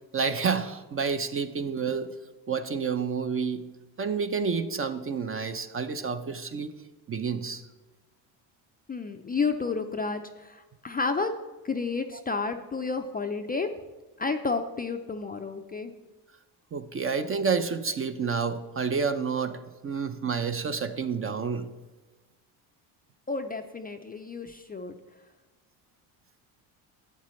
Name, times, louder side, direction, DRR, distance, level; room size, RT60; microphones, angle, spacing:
voice 1, 0.1-2.1 2.5-3.6 4.0-6.7 7.1-7.6 12.1-12.2 16.7-21.7, right 5 dB, 25° right, 9 dB, 0.5 m, -29 dB
voice 2, 8.9-11.3 11.6-13.7 14.2-15.9 23.3-25.0, left 4 dB, 20° left, 6 dB, 0.4 m, -31 dB
11.5 x 8.2 x 3.1 m, 1.2 s
supercardioid pair, 85°, 49 cm